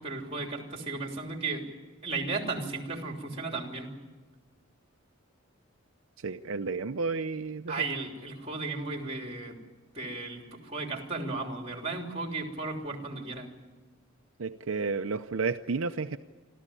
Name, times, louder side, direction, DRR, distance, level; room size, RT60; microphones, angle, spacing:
voice 1, 0.0-1.6 2.0-3.9 7.7-9.5 9.9-13.5, right 3 dB, 30° right, 3 dB, 3.3 m, -35 dB
voice 2, 6.2-7.8 14.4-16.2, right 4 dB, 70° right, 7 dB, 0.7 m, -32 dB
27.5 x 13.5 x 10.0 m, 1.3 s
head